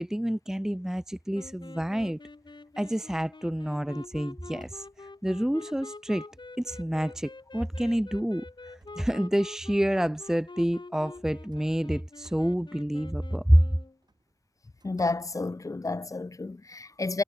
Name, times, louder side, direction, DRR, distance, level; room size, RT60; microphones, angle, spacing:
voice 1, 0.0-2.2 2.8-4.9 5.2-6.3 6.6-8.5 9.0-13.6, equal, 5° right, 0.6 m, -27 dB
sound 1, 1.3-14.0, left 3 dB, 60° left, 2.1 m, -46 dB
sound 2, 2.4-2.7 3.2-3.4 3.7-5.3 6.0-6.1 6.6-6.7 7.6-7.8 8.3-9.7 11.3-12.7 13.9-16.1, right 2 dB, 50° right, 3.6 m, -62 dB
voice 2, 14.8-17.2, left 3 dB, 40° left, 0.5 m, -31 dB
wide cardioid pair, 65°, 9 cm